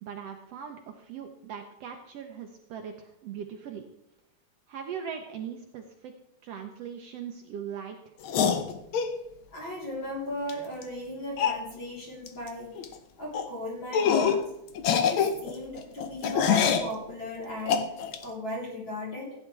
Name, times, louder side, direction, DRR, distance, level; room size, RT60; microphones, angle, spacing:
voice 1, 0.0-3.8 4.7-6.1 6.4-8.1, right 8 dB, 70° right, 4 dB, 1.7 m, -40 dB
sound 1, 8.2-9.1 10.5-10.6 10.8-10.9 11.4-11.6 12.3-12.5 12.7-12.9 13.3-13.5 13.9-14.4 14.7-16.9 17.7-18.2, left 7 dB, 80° left, 1.1 m, -25 dB
voice 2, 9.5-12.7 13.2-14.4 14.9-17.8 18.2-19.4, left 1 dB, 40° left, -4 dB, 4.3 m, -36 dB
15.5 x 9.5 x 3.4 m, 0.82 s
omnidirectional pair, 3.4 m